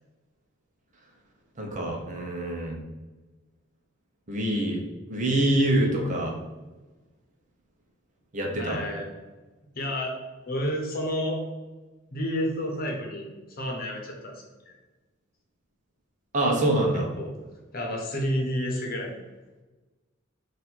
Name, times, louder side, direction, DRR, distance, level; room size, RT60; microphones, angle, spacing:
voice 1, 1.6-2.8 4.3-4.8 5.1-6.3 8.3-8.8 16.3-17.1, right 1 dB, 40° right, 0 dB, 0.8 m, -25 dB
voice 2, 8.6-9.2 9.7-10.1 10.4-11.4 12.1-13.3 13.6-14.3 14.6-14.7 17.2-17.4 17.7-19.2, equal, 50° left, 1 dB, 0.9 m, -30 dB
4.2 x 2.6 x 4.3 m, 1.2 s
head